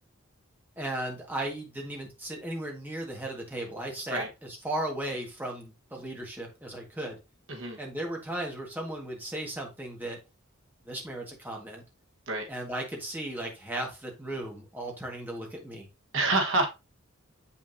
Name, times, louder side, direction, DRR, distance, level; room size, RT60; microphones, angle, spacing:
voice 1, 0.8-7.2 7.8-10.2 10.8-11.8 12.5-15.9, right 1 dB, 10° right, 1.7 m, -36 dB
voice 2, 7.5-7.8 12.3-12.5 16.1-16.7, right 2 dB, 70° right, 1.4 m, -27 dB
7.3 x 5.7 x 2.7 m
head